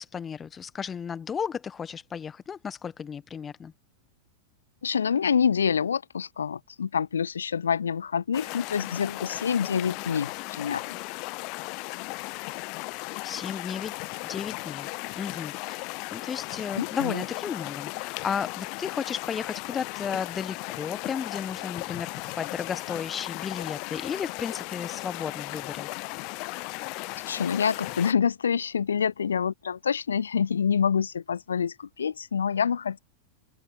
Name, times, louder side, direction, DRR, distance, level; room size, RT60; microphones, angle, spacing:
voice 1, 0.0-3.7 13.2-14.0 14.2-14.9 15.1-25.9, left 7 dB, 20° left, 1.4 m, -34 dB
voice 2, 4.8-11.0 16.8-17.2 27.3-33.0, left 7 dB, 70° left, 1.3 m, -27 dB
sound 1, 8.3-28.1, left 31 dB, 45° left, 0.7 m, -36 dB
open air
figure-of-eight pair, 90°, 0 cm